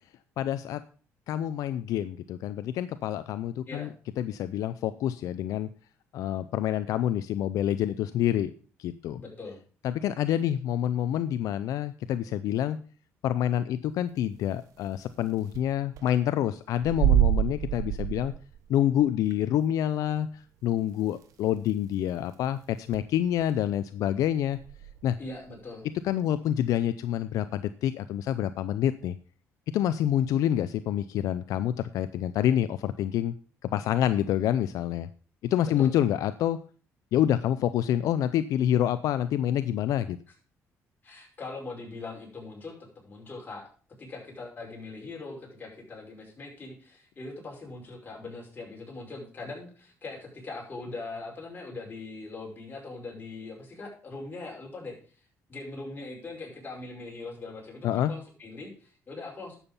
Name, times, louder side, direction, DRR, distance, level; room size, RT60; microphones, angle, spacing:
voice 1, 0.4-0.8 1.3-3.9 4.2-5.7 6.1-8.5 8.8-9.2 9.8-12.8 13.2-18.3 18.7-24.6 25.0-25.2 26.0-29.1 29.7-33.3 33.6-35.1 35.4-36.6 37.1-40.2 57.8-58.1, left 11 dB, 75° left, 13 dB, 0.5 m, -27 dB
voice 2, 9.2-9.6 25.2-25.9 35.6-35.9 41.0-42.7 43.0-43.6 44.0-54.9 55.5-59.6, left 3 dB, 30° left, -1 dB, 5.4 m, -41 dB
sound 1, 14.8-14.9 15.1-15.2 15.5-15.6 16.0-16.2 16.8-18.6 19.2-19.3 20.2-20.3 21.2-21.3 21.6-21.7 22.1-22.3 22.9-23.0 23.4-23.6 24.5-25.5, right 12 dB, 80° right, 1.2 m, -27 dB
11.0 x 7.3 x 5.4 m, 0.39 s
cardioid pair, 95°, 6 cm